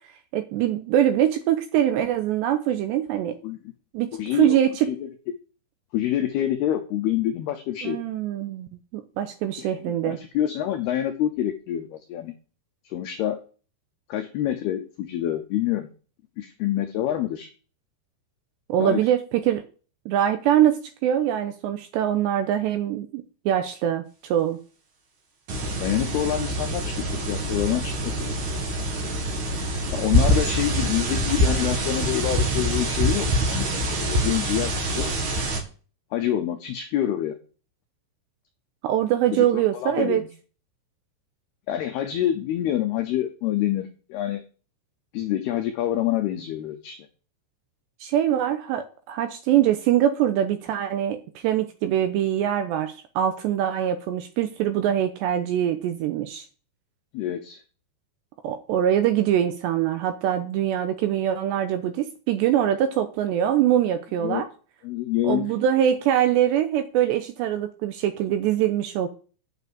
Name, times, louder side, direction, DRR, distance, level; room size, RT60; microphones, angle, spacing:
voice 1, 0.3-3.4 3.9-4.9 7.8-10.2 18.7-19.7 20.1-24.6 38.8-40.2 48.0-56.4 58.4-64.5 65.2-69.1, right 11 dB, 80° right, 8 dB, 2.6 m, -23 dB
voice 2, 4.1-4.6 4.9-5.1 5.9-8.0 9.6-12.3 12.9-13.4 14.1-15.9 16.4-17.5 18.8-19.0 25.6-26.9 27.3-28.4 29.9-35.1 36.1-37.4 39.3-40.3 41.7-44.4 45.1-47.1 57.1-57.6 64.2-64.5 64.8-65.5, left 12 dB, 85° left, 7 dB, 2.2 m, -27 dB
sound 1, 25.5-35.6, equal, 50° right, 2.9 m, -25 dB
8.6 x 6.9 x 8.3 m, 0.38 s
omnidirectional pair, 5.7 m